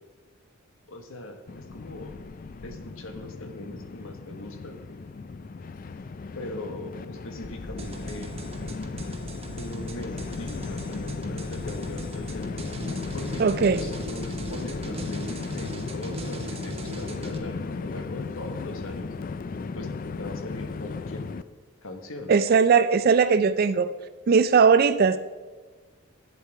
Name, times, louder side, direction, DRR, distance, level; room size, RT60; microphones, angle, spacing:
voice 1, 0.9-2.1 2.6-4.8 6.3-8.3 9.6-12.5 13.1-19.1 19.7-19.9 20.2-21.3 21.8-22.3, left 2 dB, 65° left, 6 dB, 1.3 m, -40 dB
Train, 1.5-21.4, left 4 dB, 40° left, 0.3 m, -36 dB
sound 1, 7.4-14.9, left 1 dB, 20° left, 0.7 m, -45 dB
sound 2, 7.8-17.4, right 2 dB, 25° right, 0.9 m, -40 dB
voice 2, 13.4-13.8 22.3-23.9 24.3-25.2, right 5 dB, 45° right, 11 dB, 0.3 m, -19 dB
11.0 x 8.5 x 4.6 m, 1.4 s
head